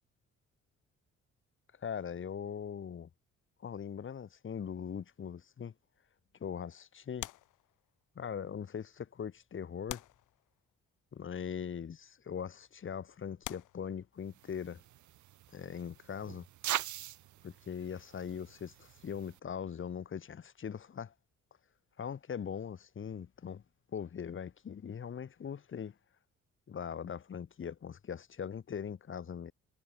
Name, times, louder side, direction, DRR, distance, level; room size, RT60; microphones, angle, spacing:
voice 1, 1.8-3.1 3.6-5.7 6.4-7.3 8.1-10.0 11.1-14.8 15.5-16.4 17.4-21.1 22.0-23.6 23.9-25.9 26.7-29.5, left 7 dB, 40° left, 1.5 m, -41 dB
sound 1, 7.2-8.2 9.0-9.1 9.9-10.9 11.9-12.1 12.8-12.9 13.4-14.6 16.5-18.3 18.6-18.8, left 16 dB, 85° left, 1.2 m, -48 dB
sound 2, 14.3-19.4, right 14 dB, 75° right, 1.1 m, -42 dB
cardioid pair, 90°, 30 cm